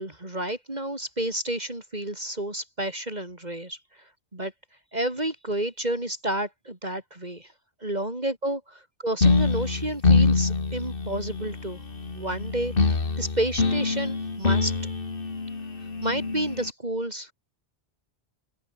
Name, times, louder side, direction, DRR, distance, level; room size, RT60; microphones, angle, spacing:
voice 1, 0.0-3.8 4.3-4.5 4.9-7.5 7.8-8.6 9.0-11.8 12.1-14.7 16.0-17.3, right 1 dB, 40° right, 4.0 m, -30 dB
sound 1, 9.2-16.7, left 4 dB, 55° left, 2.2 m, -25 dB
open air
omnidirectional pair, 1.1 m